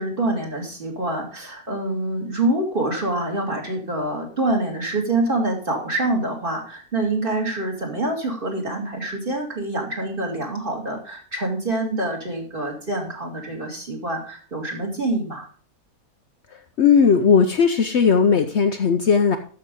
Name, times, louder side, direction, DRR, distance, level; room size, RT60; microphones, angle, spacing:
voice 1, 0.0-15.5, right 2 dB, 35° right, 0 dB, 2.5 m, -26 dB
voice 2, 16.8-19.4, left 6 dB, 60° left, 6 dB, 0.9 m, -17 dB
13.0 x 5.8 x 3.8 m, 0.44 s
omnidirectional pair, 1.5 m